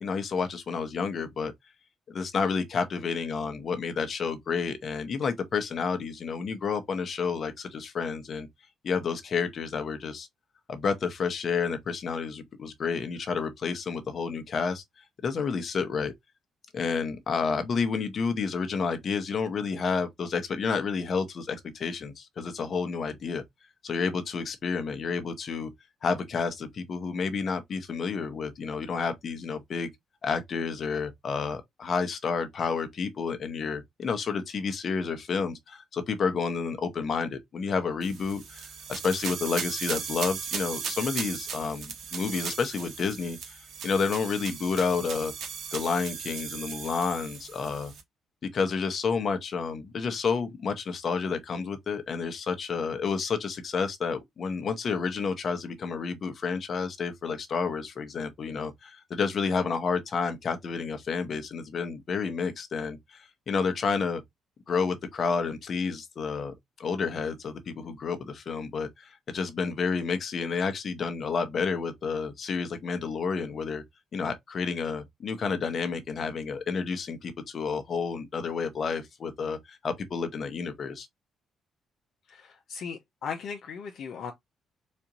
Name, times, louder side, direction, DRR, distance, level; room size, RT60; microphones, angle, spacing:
voice 1, 0.0-1.5 2.1-8.5 8.8-10.3 10.7-14.8 15.2-16.1 16.7-23.4 23.8-25.7 26.0-29.9 30.2-38.6 38.9-43.6 43.8-45.3 45.7-47.9 48.4-64.2 64.7-73.8 74.1-81.1, left 5 dB, 50° left, 0.9 m, -30 dB
sound 1, 38.0-48.0, right 6 dB, 70° right, 1.4 m, -37 dB
voice 2, 82.3-84.3, left 6 dB, 65° left, 0.6 m, -37 dB
4.2 x 2.6 x 2.9 m
cardioid pair, 90°, 0 cm